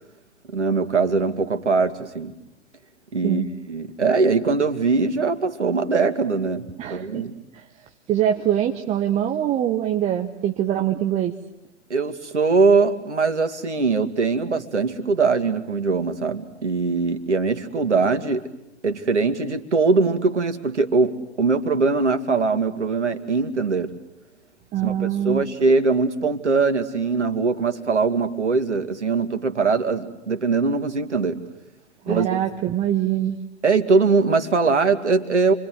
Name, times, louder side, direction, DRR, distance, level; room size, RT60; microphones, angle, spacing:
voice 1, 0.5-2.3 3.1-3.4 3.7-7.3 11.9-18.4 18.8-23.9 24.8-31.4 32.1-32.3 33.6-35.5, right 4 dB, 75° right, 8 dB, 2.6 m, -21 dB
voice 2, 6.8-7.2 7.5-7.6 8.1-11.3 24.7-25.4 32.1-33.4, right 11 dB, 20° right, 4 dB, 1.1 m, -23 dB
29.5 x 25.0 x 8.0 m, 0.90 s
figure-of-eight pair, 115°, 35 cm